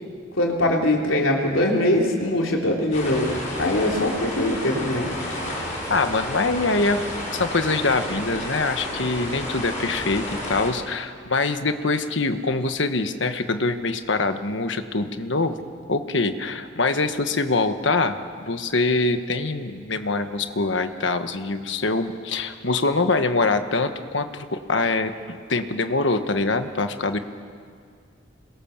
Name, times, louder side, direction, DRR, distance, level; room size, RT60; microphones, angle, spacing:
voice 1, 0.4-5.1, left 1 dB, 85° left, 0 dB, 3.8 m, -22 dB
sound 1, 2.9-10.7, left 1 dB, 40° left, 5.8 m, -31 dB
voice 2, 5.9-7.0 7.3-15.6 15.9-27.2, left 3 dB, 65° left, 8 dB, 1.3 m, -24 dB
26.5 x 22.0 x 7.3 m, 2.2 s
head